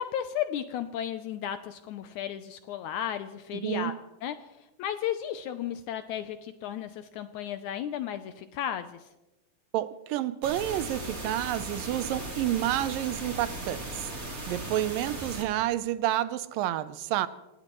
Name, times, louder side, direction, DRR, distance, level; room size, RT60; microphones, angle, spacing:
voice 1, 0.0-3.9 4.2-4.4 4.8-9.0, left 10 dB, 80° left, 1.8 m, -34 dB
voice 2, 3.5-4.0 9.7-14.1 14.5-17.3, right 13 dB, 80° right, 2.3 m, -29 dB
sound 1, 10.4-15.4, right 1 dB, 25° right, 3.1 m, -38 dB
26.5 x 17.5 x 3.1 m
omnidirectional pair, 4.0 m